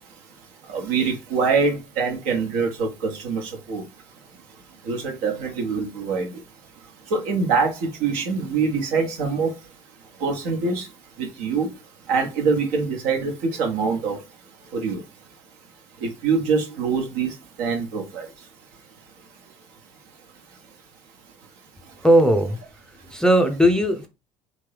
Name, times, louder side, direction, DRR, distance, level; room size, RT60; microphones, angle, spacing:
voice 1, 0.7-3.8 4.8-6.3 7.1-9.5 10.2-10.9 11.2-11.7 12.1-14.2 14.7-15.0 16.0-18.3, right 5 dB, 60° right, 1.1 m, -24 dB
voice 2, 22.0-22.6 23.1-24.1, equal, 5° left, 0.6 m, -17 dB
3.6 x 2.7 x 3.3 m
figure-of-eight pair, 60°, 17 cm